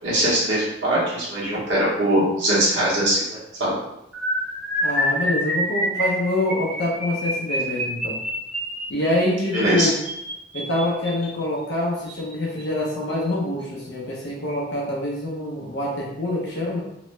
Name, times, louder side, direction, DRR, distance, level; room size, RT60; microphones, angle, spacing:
voice 1, 0.0-3.7 9.5-9.9, right 1 dB, 80° right, -7 dB, 1.1 m, -21 dB
sound 1, 4.1-11.3 12.1-12.3 12.6-12.8 13.1-13.3, equal, 5° right, 0.9 m, -27 dB
voice 2, 4.8-8.2 8.9-10.0 10.5-16.8, left 1 dB, 70° left, -4 dB, 0.6 m, -25 dB
2.9 x 2.1 x 3.0 m, 0.83 s
head